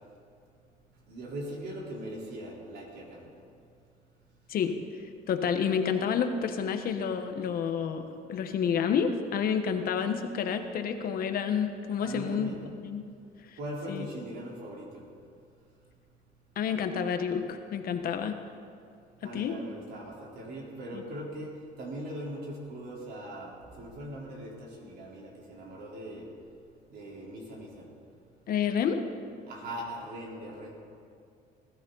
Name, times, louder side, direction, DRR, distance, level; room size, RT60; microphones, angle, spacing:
voice 1, 1.1-3.3 12.0-12.6 13.6-15.0 19.2-21.5 21.8-26.3 26.9-27.9 29.5-30.7, right 1 dB, 70° right, -3 dB, 3.9 m, -40 dB
voice 2, 5.3-12.5 12.8-13.1 13.9-14.1 16.6-18.4 19.2-19.6 20.9-21.0 28.5-29.0, left 7 dB, 60° left, 7 dB, 1.2 m, -29 dB
20.0 x 13.5 x 4.0 m, 2.3 s
cardioid pair, 110°, 17 cm